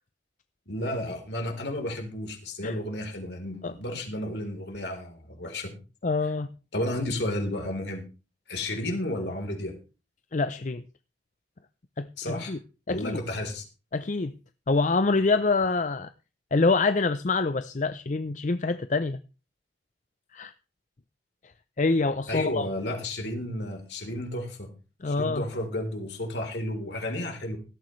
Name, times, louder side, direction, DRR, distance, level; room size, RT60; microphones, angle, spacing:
voice 1, 0.7-5.7 6.7-8.0 8.5-9.7 12.2-12.5 12.9-13.6 22.3-24.7 25.1-27.6, left 1 dB, 70° left, 3.7 m, -32 dB
voice 2, 6.0-6.5 10.3-10.8 12.0-12.6 12.9-13.2 13.9-14.3 14.7-16.1 16.5-19.2 20.3-20.5 21.8-22.7 25.0-25.4, left 3 dB, 45° left, 0.6 m, -26 dB
17.0 x 13.5 x 3.2 m
head